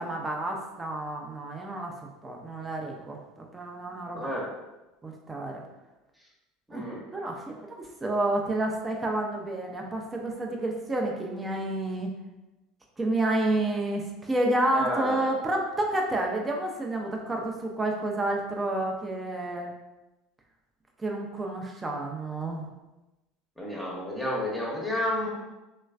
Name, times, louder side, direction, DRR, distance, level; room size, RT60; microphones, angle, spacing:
voice 1, 0.0-1.9 2.2-4.3 5.0-5.6 6.7-6.9 7.1-12.1 13.0-19.7 21.0-22.7, right 1 dB, 20° right, 0 dB, 0.5 m, -30 dB
voice 2, 6.7-7.0 14.7-15.2 23.6-25.3, left 1 dB, 5° left, -5 dB, 0.9 m, -31 dB
3.1 x 3.1 x 2.4 m, 1.0 s
hypercardioid pair, 70°, 0 cm